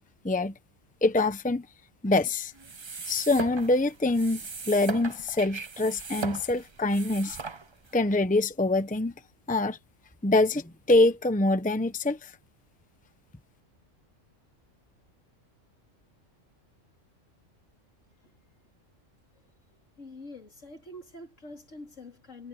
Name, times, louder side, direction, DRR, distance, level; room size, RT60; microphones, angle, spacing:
voice 1, 1.0-1.6 2.0-2.5 3.1-4.4 4.7-7.4 7.9-9.1 9.5-9.8 10.2-12.3, left 2 dB, 5° left, 0.9 m, -24 dB
sound 1, 2.5-8.0, right 4 dB, 30° right, 0.6 m, -38 dB
voice 2, 20.0-22.5, left 2 dB, 70° left, 4.1 m, -45 dB
omnidirectional pair, 1.3 m